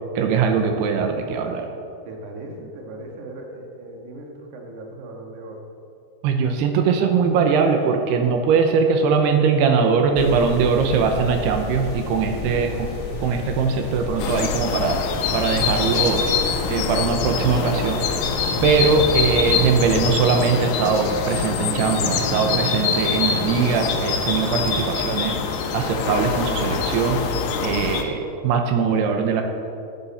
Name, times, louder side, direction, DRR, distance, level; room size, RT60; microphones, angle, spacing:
voice 1, 0.2-1.7 6.2-12.7 13.2-15.0 15.3-16.2 16.7-18.0 18.6-25.4 25.7-27.3 27.6-29.4, right 5 dB, 85° right, 4 dB, 3.0 m, -21 dB
voice 2, 2.1-5.7 12.4-13.0, right 2 dB, 60° right, 1 dB, 2.6 m, -38 dB
sound 1, 10.2-20.2, left 3 dB, 55° left, 1.1 m, -32 dB
sound 2, 14.2-28.0, left 6 dB, 80° left, 1.7 m, -24 dB
sound 3, 21.9-27.1, left 2 dB, 5° right, 1.3 m, -37 dB
18.0 x 9.1 x 4.2 m, 2.5 s
omnidirectional pair, 4.6 m